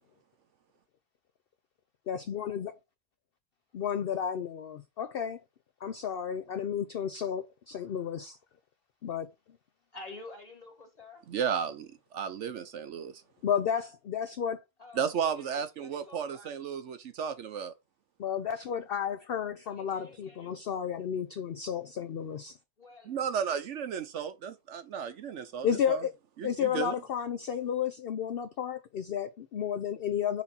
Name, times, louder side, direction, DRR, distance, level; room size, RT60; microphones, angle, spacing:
voice 1, 2.1-2.8 3.7-5.4 5.8-8.4 9.0-9.3 13.4-14.6 18.2-22.6 25.6-26.1 26.4-30.4, left 8 dB, 60° left, 0.7 m, -32 dB
voice 2, 9.9-11.2 14.8-16.6 19.6-20.6 22.8-23.2, left 2 dB, 30° left, 2.0 m, -49 dB
voice 3, 11.3-13.2 14.9-17.7 23.1-26.1 26.4-26.9, right 7 dB, 65° right, 0.9 m, -34 dB
5.9 x 4.0 x 4.2 m
omnidirectional pair, 1.4 m